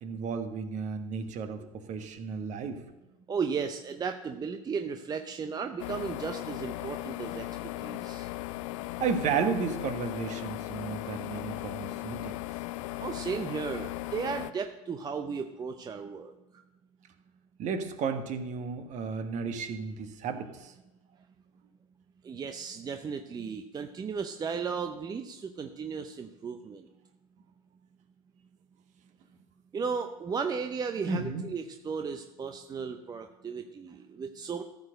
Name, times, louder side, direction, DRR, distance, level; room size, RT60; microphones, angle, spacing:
voice 1, 0.0-2.8 9.0-12.4 17.6-20.7 31.1-31.5, right 5 dB, 40° right, 8 dB, 1.4 m, -33 dB
voice 2, 3.3-7.5 7.8-8.3 13.0-16.3 22.2-26.8 29.7-34.6, right 5 dB, 20° right, 7 dB, 0.7 m, -35 dB
sound 1, 5.8-14.5, left 17 dB, 60° left, 0.5 m, -37 dB
14.0 x 4.8 x 6.4 m, 1.0 s
hypercardioid pair, 85°, 18 cm